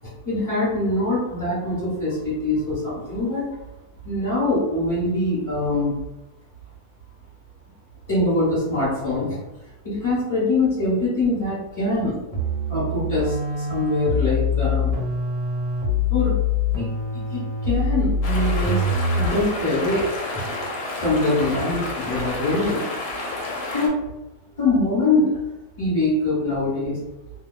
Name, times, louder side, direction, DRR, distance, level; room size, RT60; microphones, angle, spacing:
voice 1, 0.0-3.4 4.0-5.9 8.1-9.4 9.8-12.2 12.7-15.0 16.1-16.3 16.7-16.8 17.1-18.8 19.1-20.4 21.0-22.9 23.7-23.9 24.6-25.4 25.8-27.0, left 2 dB, 20° left, -13 dB, 1.2 m, -23 dB
sound 1, 12.3-19.5, left 2 dB, 90° right, 1.2 m, -24 dB
sound 2, 18.2-23.9, left 2 dB, 75° left, 1.1 m, -30 dB
2.7 x 2.2 x 2.2 m, 1.0 s
omnidirectional pair, 1.9 m